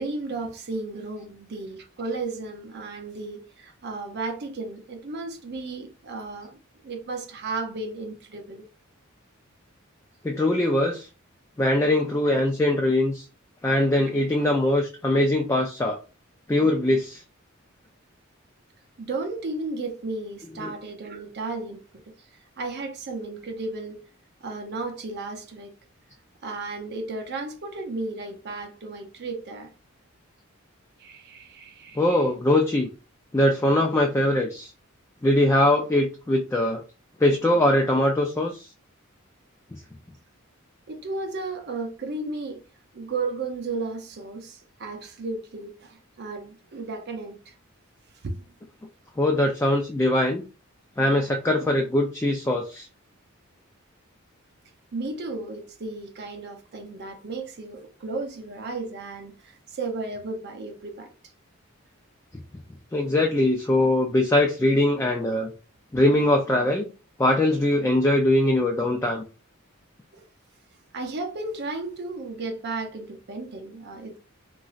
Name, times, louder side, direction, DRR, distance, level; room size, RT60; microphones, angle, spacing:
voice 1, 0.0-8.7 19.0-22.1 22.6-24.1 24.4-25.7 26.4-29.7 31.0-32.2 40.9-42.6 42.9-47.5 48.2-48.4 51.6-51.7 54.9-61.1 70.1-70.3 70.9-74.2, right 3 dB, 50° right, 0.6 m, -34 dB
voice 2, 10.2-11.1 11.6-13.3 13.6-16.0 16.5-17.2 20.6-20.7 32.0-32.9 33.3-34.7 35.2-36.8 37.2-38.7 39.7-39.8 49.2-50.4 51.0-52.9 62.9-65.5 65.9-66.9 67.2-69.2, left 1 dB, 15° left, 0.3 m, -22 dB
3.0 x 2.5 x 2.4 m
head